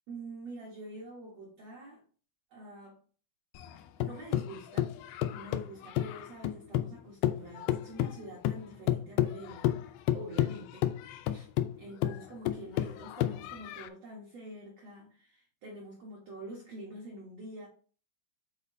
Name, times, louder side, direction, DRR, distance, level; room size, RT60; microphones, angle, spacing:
voice 1, 0.1-2.0 2.5-3.0 3.6-4.9 5.3-9.7 10.1-10.9 11.1-11.5 11.8-17.7, right 1 dB, 80° right, -3 dB, 1.4 m, -46 dB
sound 1, 3.6-7.0 7.2-13.9, left 12 dB, 85° left, 2.2 m, -31 dB
8.9 x 4.0 x 2.7 m, 0.41 s
omnidirectional pair, 4.9 m